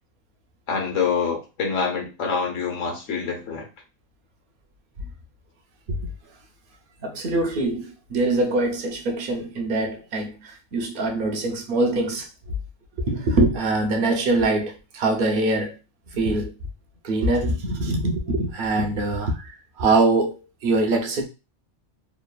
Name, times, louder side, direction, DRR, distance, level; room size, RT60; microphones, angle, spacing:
voice 1, 0.7-3.7, left 5 dB, 75° left, 1.2 m, -26 dB
voice 2, 7.0-12.6 13.0-15.8 16.1-16.5 17.0-21.3, right 2 dB, 55° right, 0.6 m, -23 dB
3.1 x 2.3 x 2.3 m
omnidirectional pair, 1.3 m